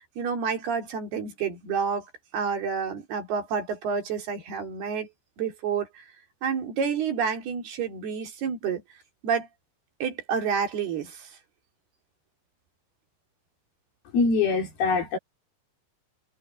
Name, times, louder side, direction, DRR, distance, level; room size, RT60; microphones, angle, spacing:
voice 1, 0.0-5.1 5.4-6.1 6.4-8.8 9.2-9.5 10.0-11.4, right 6 dB, 85° right, 5.3 m, -29 dB
voice 2, 14.1-15.2, left 4 dB, 75° left, 5.8 m, -23 dB
omnidirectional pair, 4.4 m